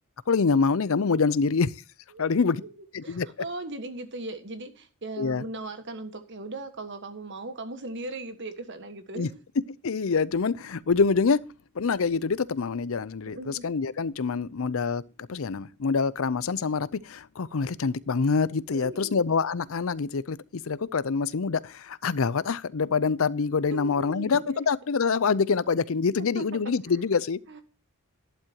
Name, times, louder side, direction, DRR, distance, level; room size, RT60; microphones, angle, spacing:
voice 1, 0.3-1.7 2.2-2.6 2.9-3.3 5.2-5.4 9.2-9.3 9.8-11.4 11.8-15.0 15.3-27.4, left 5 dB, 65° left, 0.5 m, -26 dB
voice 2, 2.1-2.7 3.0-9.4 13.2-13.6 18.7-19.2 23.7-24.6 26.2-26.5 26.9-27.0 27.5-27.6, right 2 dB, 50° right, 1.6 m, -38 dB
12.0 x 11.5 x 2.9 m
head